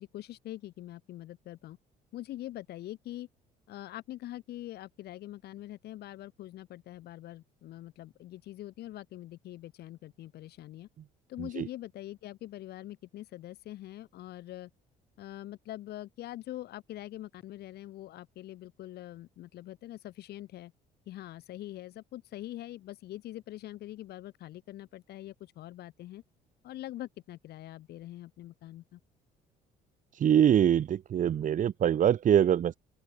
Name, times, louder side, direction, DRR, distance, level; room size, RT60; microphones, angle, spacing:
voice 1, 0.0-1.8 2.1-3.3 3.7-10.9 11.3-14.7 15.2-20.7 21.1-26.2 26.6-29.0, left 14 dB, 70° left, 5.5 m, -44 dB
voice 2, 30.1-32.8, right 9 dB, 50° right, 2.1 m, -24 dB
open air
cardioid pair, 110°, 17 cm